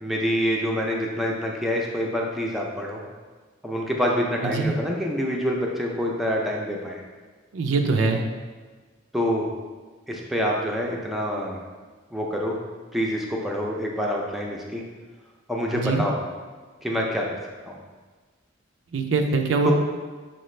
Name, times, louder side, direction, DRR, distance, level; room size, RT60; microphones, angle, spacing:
voice 1, 0.0-3.0 3.6-7.0 9.1-9.5 10.1-11.6 12.1-12.6 12.9-14.8 15.5-16.2 16.8-17.3 17.7-17.8 19.6-19.7, equal, ahead, -2 dB, 0.4 m, -26 dB
voice 2, 4.4-4.7 7.5-8.2 15.7-16.0 18.9-19.7, right 3 dB, 80° right, 4 dB, 0.4 m, -23 dB
5.8 x 2.4 x 3.1 m, 1.4 s
head